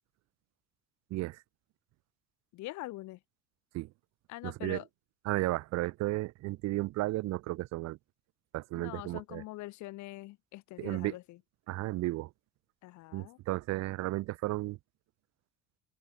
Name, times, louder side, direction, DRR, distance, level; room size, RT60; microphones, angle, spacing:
voice 1, 1.1-1.4 3.7-3.9 4.4-4.8 5.3-8.0 8.5-9.4 10.8-11.1 11.7-12.3 13.1-14.8, right 19 dB, 55° right, 0.7 m, -33 dB
voice 2, 2.5-3.2 4.3-4.9 8.7-11.4 12.8-13.4, left 18 dB, 60° left, 1.6 m, -44 dB
open air
cardioid pair, 150°, 33 cm